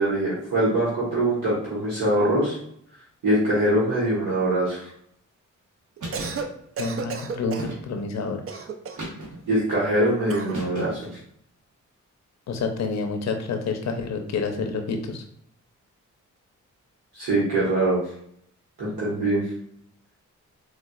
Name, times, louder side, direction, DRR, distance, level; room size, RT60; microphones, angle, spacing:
voice 1, 0.0-2.5 3.2-4.9 9.5-11.0 17.1-18.0 18.8-19.4, right 1 dB, 85° right, -8 dB, 1.2 m, -23 dB
Cough, 6.0-6.5 6.8-7.7 8.5-9.1 10.3-10.6, right 5 dB, 45° right, 0.4 m, -33 dB
sound 1, 6.0-6.4 7.6-8.1 9.0-9.6 10.5-11.2, right 1 dB, 65° right, 1.2 m, -36 dB
voice 2, 6.8-8.6 12.5-15.2, left 4 dB, 55° left, 5 dB, 0.6 m, -28 dB
3.9 x 2.3 x 2.3 m, 0.68 s
cardioid pair, 60°, 32 cm